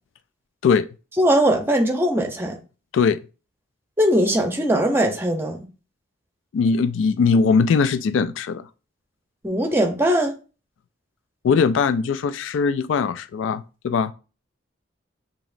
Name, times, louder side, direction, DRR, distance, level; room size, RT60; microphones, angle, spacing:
voice 1, 1.2-2.6 4.0-5.6 9.4-10.3, equal, 10° right, 0.7 m, -20 dB
voice 2, 6.5-8.7 11.4-14.1, left 5 dB, 75° left, 0.3 m, -20 dB
7.0 x 2.9 x 2.6 m
head